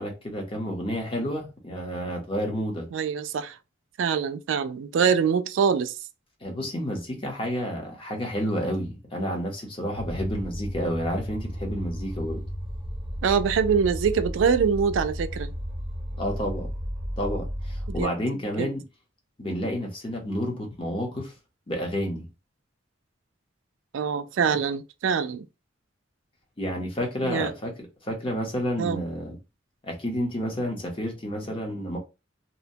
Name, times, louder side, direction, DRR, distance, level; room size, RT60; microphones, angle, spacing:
voice 1, 0.0-2.9 6.4-12.4 16.2-16.7 17.2-18.8 19.4-21.3 21.7-22.3 26.6-29.4 29.8-32.0, equal, 30° left, 0.8 m, -30 dB
voice 2, 2.9-3.5 4.0-5.9 13.2-15.5 18.0-18.1 18.6-18.7 23.9-25.5 27.2-27.5 28.8-29.0, right 6 dB, 75° right, 0.3 m, -24 dB
sound 1, 9.9-18.0, equal, 5° right, 0.7 m, -33 dB
2.8 x 2.1 x 2.6 m
head